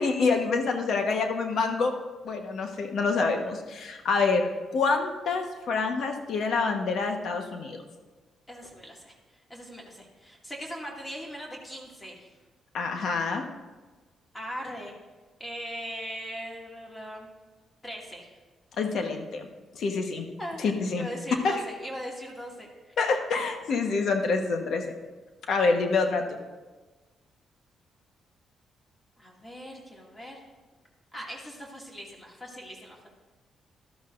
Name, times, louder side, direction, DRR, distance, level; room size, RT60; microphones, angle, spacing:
voice 1, 0.0-1.9 2.2-7.8 12.7-13.4 18.8-19.5 19.7-20.3 20.6-21.1 21.4-21.5 23.0-24.9 25.5-26.4, left 4 dB, 70° left, 4 dB, 1.3 m, -27 dB
voice 2, 8.5-9.1 9.5-12.3 12.9-13.0 14.3-14.9 15.4-17.3 17.8-18.3 20.4-20.6 20.9-22.9 29.2-30.4 31.1-33.1, equal, 20° left, -2 dB, 2.4 m, -40 dB
13.0 x 12.0 x 2.6 m, 1.3 s
cardioid pair, 85°, 0 cm